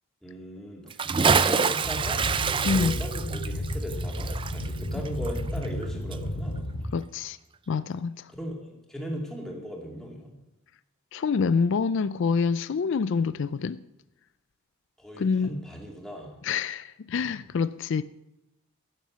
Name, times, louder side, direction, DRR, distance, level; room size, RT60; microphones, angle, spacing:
voice 1, 0.2-2.2 2.7-6.6 8.4-10.3 15.0-16.4, equal, ahead, 2.5 m, -38 dB
Bathtub (filling or washing) / Splash splatter, 0.9-5.8 6.1-6.2, right 5 dB, 25° right, 0.4 m, -26 dB
Boat Water vehicle, 1.8-6.9, equal, 70° left, 4.5 m, -32 dB
voice 2, 2.6-3.0 6.9-7.4 7.7-8.3 11.1-13.8 15.2-15.6 16.4-18.0, left 5 dB, 55° left, 0.4 m, -26 dB
15.0 x 7.3 x 7.4 m
head